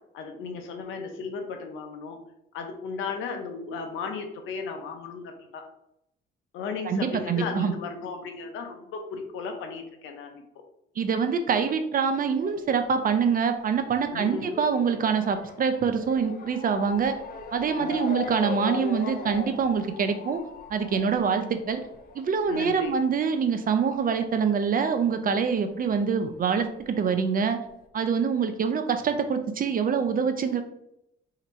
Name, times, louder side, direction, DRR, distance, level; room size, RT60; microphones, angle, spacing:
voice 1, 0.1-2.2 2.5-5.6 6.5-10.4 14.1-14.5 17.8-18.0 21.0-21.2 22.5-22.9, left 5 dB, 90° left, 5 dB, 0.8 m, -35 dB
voice 2, 6.8-7.7 11.0-17.2 17.5-20.4 20.7-21.8 22.1-27.6 27.9-30.6, right 6 dB, 45° right, 8 dB, 0.6 m, -25 dB
Motor vehicle (road) / Siren, 12.4-25.4 25.7-26.8 27.5-27.6 27.8-27.9, left 4 dB, 45° left, 0.7 m, -40 dB
3.4 x 2.9 x 4.3 m, 0.78 s
cardioid pair, 90°, 20 cm